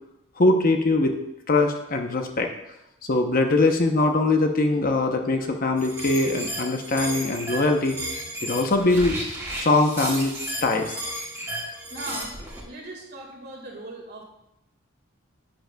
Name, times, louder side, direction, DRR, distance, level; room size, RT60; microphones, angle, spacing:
voice 1, 0.4-1.1 1.5-2.5 3.1-8.0 8.4-9.2 9.6-10.3 10.6-10.9, left 2 dB, 45° left, 4 dB, 0.8 m, -22 dB
sound 1, 5.8-12.6, right 1 dB, 15° right, 1.7 m, -33 dB
voice 2, 11.8-12.3 12.6-14.2, right 1 dB, 50° right, 0 dB, 2.0 m, -38 dB
10.0 x 9.0 x 2.3 m, 0.87 s
head